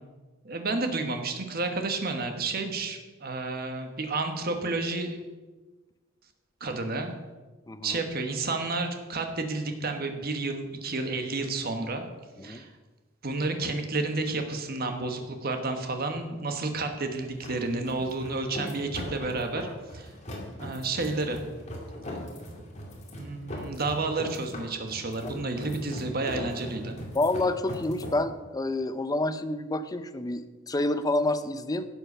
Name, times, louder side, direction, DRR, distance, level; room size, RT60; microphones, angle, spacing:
voice 1, 0.4-5.2 6.6-7.1 7.8-12.1 12.4-12.7 13.2-19.7 19.9-20.1 20.6-21.4 23.1-27.0, right 3 dB, 50° right, 5 dB, 1.3 m, -31 dB
voice 2, 7.7-8.0 12.4-12.6 25.2-25.3 27.1-31.9, left 2 dB, 20° left, 11 dB, 0.5 m, -28 dB
sound 1, 14.8-28.2, equal, 35° left, 2.5 m, -40 dB
12.0 x 7.9 x 5.6 m, 1.3 s
head